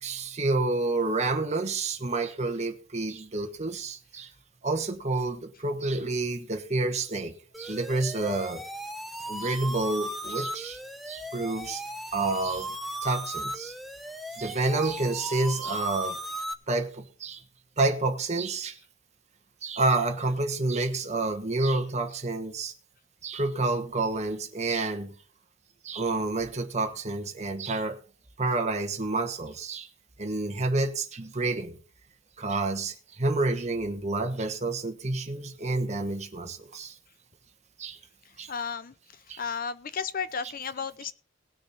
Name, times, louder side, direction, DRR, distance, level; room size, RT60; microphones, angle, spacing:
voice 1, 0.0-4.3 4.6-8.7 9.3-10.8 11.1-11.8 12.1-12.7 13.0-13.7 14.4-16.2 16.7-17.4 17.8-18.8 19.6-22.7 23.2-25.1 25.8-28.0 28.4-29.9 30.2-31.8 32.4-37.0 37.8-38.0 38.4-38.5 39.3-39.4, right 2 dB, 35° right, 1.4 m, -29 dB
sound 1, 7.5-16.5, right 1 dB, ahead, 0.9 m, -37 dB
voice 2, 38.5-38.9 39.4-41.1, left 6 dB, 45° left, 0.6 m, -33 dB
19.0 x 6.4 x 4.3 m
head